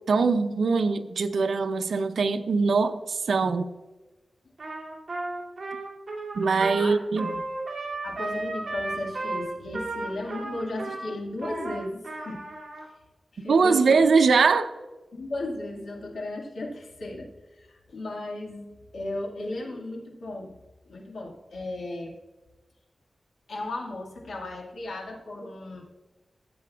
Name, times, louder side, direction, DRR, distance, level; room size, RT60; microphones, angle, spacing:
voice 1, 0.1-3.7 6.3-7.4 13.4-14.7, right 4 dB, 80° right, 0.6 m, -22 dB
Trumpet, 4.6-12.9, right 2 dB, 45° right, 2.3 m, -34 dB
voice 2, 8.0-12.4 13.3-14.1 15.1-20.5 20.9-22.1 23.5-25.8, left 2 dB, 85° left, 1.9 m, -35 dB
15.0 x 7.7 x 2.4 m
wide cardioid pair, 115°, 0 cm